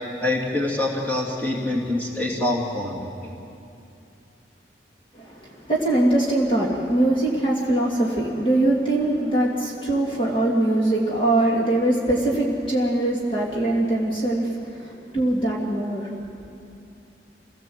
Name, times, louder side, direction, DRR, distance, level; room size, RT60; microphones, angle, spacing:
voice 1, 0.2-3.3, left 2 dB, 10° left, -3 dB, 2.9 m, -25 dB
voice 2, 5.1-16.1, right 1 dB, 30° left, -3 dB, 2.4 m, -22 dB
27.0 x 17.5 x 7.8 m, 2.6 s
head